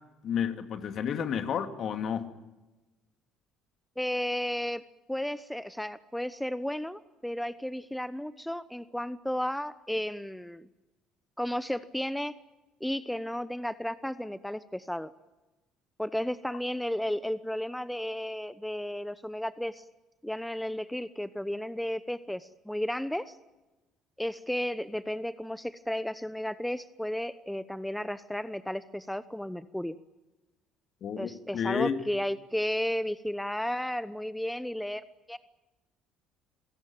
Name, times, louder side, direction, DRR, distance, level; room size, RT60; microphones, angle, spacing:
voice 1, 0.2-2.3 31.0-32.0, left 7 dB, 55° left, 2.4 m, -31 dB
voice 2, 4.0-4.8 5.1-10.7 11.4-12.3 12.8-15.1 16.0-19.8 20.2-23.4 24.2-30.0 31.2-35.4, left 1 dB, 5° left, 1.0 m, -33 dB
28.0 x 17.5 x 9.0 m
hypercardioid pair, 70°, 0 cm